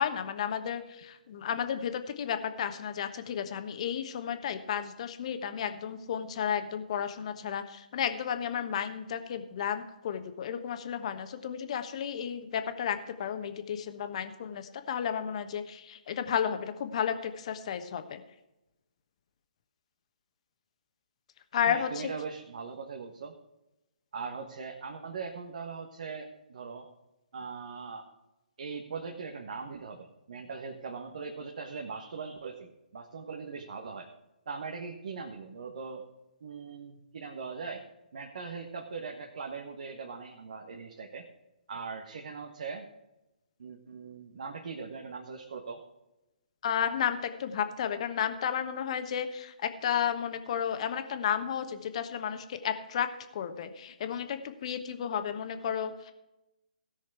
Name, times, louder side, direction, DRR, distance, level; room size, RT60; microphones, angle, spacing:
voice 1, 0.0-18.2 21.5-22.1 46.6-53.1 53.3-56.1, left 8 dB, 45° left, 9 dB, 1.2 m, -32 dB
voice 2, 21.7-23.3 24.1-26.9 27.3-28.1 28.6-34.1 34.5-36.1 36.4-37.8 38.1-41.3 41.7-42.9 43.6-45.8, right 5 dB, 60° right, 3 dB, 1.4 m, -40 dB
17.0 x 6.4 x 4.7 m, 0.96 s
figure-of-eight pair, 140°, 5 cm